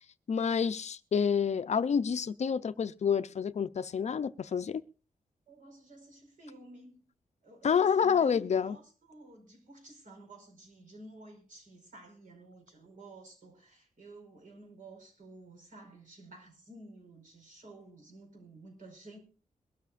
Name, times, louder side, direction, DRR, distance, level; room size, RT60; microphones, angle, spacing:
voice 1, 0.3-4.8 7.6-8.8, left 7 dB, 50° left, 0.5 m, -28 dB
voice 2, 5.5-7.0 7.4-19.2, right 2 dB, 65° right, 4.9 m, -52 dB
22.5 x 12.5 x 2.5 m
wide cardioid pair, 155°, 14 cm